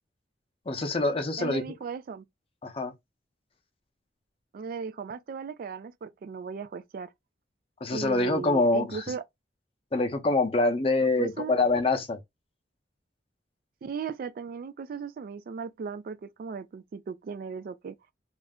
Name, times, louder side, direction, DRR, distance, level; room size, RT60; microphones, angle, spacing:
voice 1, 0.7-1.6 2.6-2.9 7.8-9.0 9.9-12.2, left 2 dB, 30° left, 0.6 m, -25 dB
voice 2, 1.4-2.3 4.5-7.1 7.9-9.2 11.0-11.5 13.8-18.0, right 5 dB, 55° right, 0.3 m, -37 dB
2.5 x 2.1 x 3.4 m
head